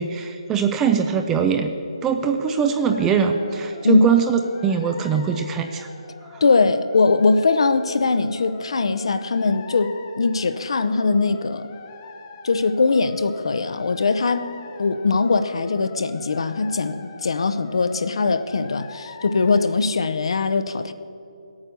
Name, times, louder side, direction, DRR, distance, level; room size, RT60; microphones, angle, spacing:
voice 1, 0.0-1.7 2.0-5.9 6.3-6.4, right 6 dB, 10° right, 6 dB, 0.4 m, -22 dB
sound 1, 2.3-19.6, left 4 dB, 25° left, 1.2 m, -43 dB
voice 2, 6.4-11.7 12.4-14.5 14.8-20.9, left 4 dB, 55° left, 11 dB, 0.7 m, -21 dB
16.0 x 8.9 x 6.8 m, 2.8 s
hypercardioid pair, 170°, 3 cm